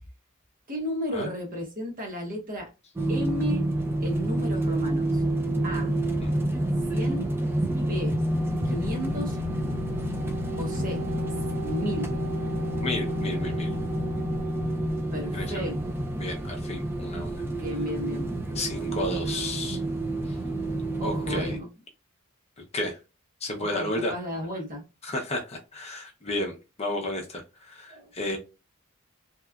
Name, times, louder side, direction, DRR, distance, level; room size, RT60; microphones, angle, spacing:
voice 1, 0.7-2.7 3.1-3.7 4.0-5.2 5.6-5.9 6.9-7.4 7.7-8.2 8.6-9.4 10.6-11.1 11.6-12.1 15.1-15.9 17.3-18.3 21.0-21.7 23.6-24.8 27.9-28.1, equal, 40° right, 0.9 m, -34 dB
sound 1, 3.0-21.6, right 1 dB, 10° right, 0.3 m, -28 dB
voice 2, 12.8-13.7 15.3-15.7 16.2-17.4 18.5-19.8 21.0-21.6 22.7-23.0 23.4-24.1 25.0-28.4, left 2 dB, 30° left, 0.6 m, -32 dB
2.8 x 2.2 x 2.3 m
head